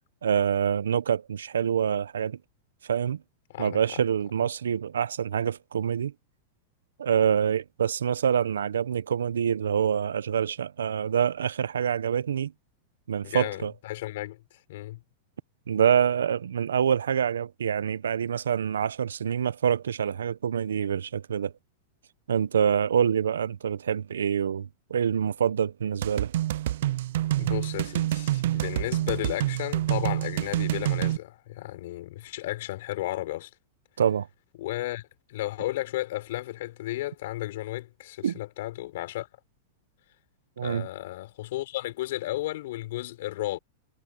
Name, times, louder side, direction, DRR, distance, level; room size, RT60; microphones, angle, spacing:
voice 1, 0.2-2.4 2.8-3.2 3.6-6.1 7.0-12.5 13.1-13.7 15.7-21.5 22.3-26.3 34.0-34.3 38.2-38.4 40.6-40.9, right 8 dB, 85° right, 1.1 m, -26 dB
voice 2, 3.5-4.0 13.2-14.4 14.7-15.0 27.4-33.5 34.6-39.3 40.6-43.6, left 16 dB, 65° left, 4.9 m, -34 dB
sound 1, 26.0-31.2, right 14 dB, 70° right, 0.3 m, -27 dB
hypercardioid pair, 110°, 0 cm